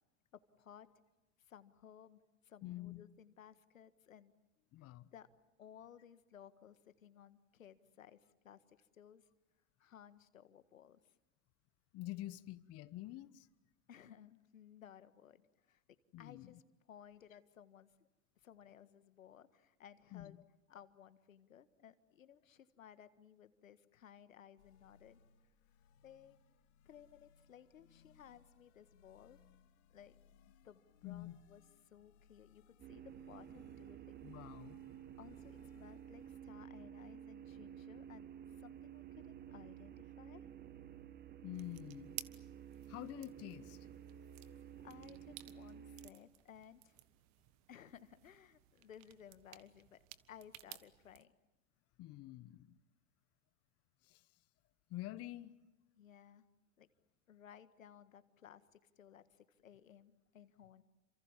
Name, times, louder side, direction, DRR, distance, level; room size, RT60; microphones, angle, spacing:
voice 1, 0.3-0.9 1.5-4.3 4.8-5.3 5.6-9.2 9.8-11.0 13.9-15.8 16.2-16.6 16.9-17.9 18.4-20.4 20.7-25.2 26.0-26.4 26.8-29.4 29.9-30.2 30.6-34.1 35.2-38.3 38.6-40.4 44.4-47.0 47.7-51.3 56.0-56.4 56.8-56.9 57.3-60.8, left 9 dB, 80° left, 1.7 m, -59 dB
voice 2, 2.6-3.0 4.7-5.1 11.9-13.5 16.1-16.5 20.1-20.4 31.0-31.4 34.2-34.8 41.4-42.2 42.9-43.9 52.0-52.8 54.0-54.2 54.9-55.5, left 15 dB, 35° left, 1.1 m, -47 dB
sound 1, 24.6-36.3, left 7 dB, 55° left, 2.8 m, -68 dB
sound 2, 32.8-46.1, right 9 dB, 25° right, 1.4 m, -52 dB
sound 3, 41.5-51.2, right 16 dB, 45° right, 1.5 m, -56 dB
29.0 x 26.5 x 7.4 m
hypercardioid pair, 100°, 39 cm